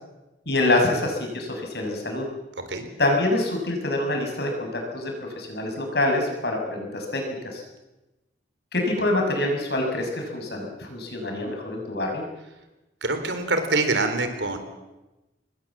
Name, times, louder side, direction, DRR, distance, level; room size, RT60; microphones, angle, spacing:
voice 1, 0.4-2.2 3.0-7.6 8.7-12.2, left 2 dB, 65° left, 2 dB, 6.8 m, -26 dB
voice 2, 13.0-14.6, right 3 dB, 80° right, 8 dB, 3.9 m, -24 dB
26.0 x 21.0 x 7.4 m, 1.0 s
head